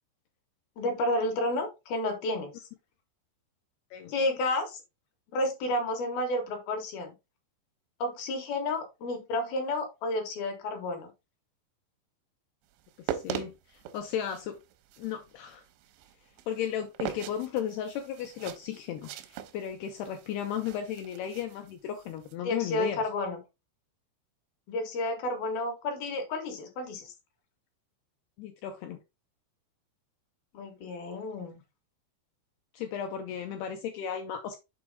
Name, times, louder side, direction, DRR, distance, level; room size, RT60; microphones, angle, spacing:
voice 1, 0.8-2.6 4.1-4.8 5.3-7.1 8.0-11.1 22.4-23.4 24.7-27.1 30.5-31.6, left 1 dB, 65° left, 2.8 m, -31 dB
sound 1, 12.8-22.3, right 10 dB, 85° right, 3.0 m, -41 dB
voice 2, 13.0-14.6 15.0-15.6 16.5-23.4 28.4-29.0 32.7-34.6, left 9 dB, 85° left, 2.3 m, -35 dB
7.3 x 4.6 x 3.5 m
omnidirectional pair, 5.4 m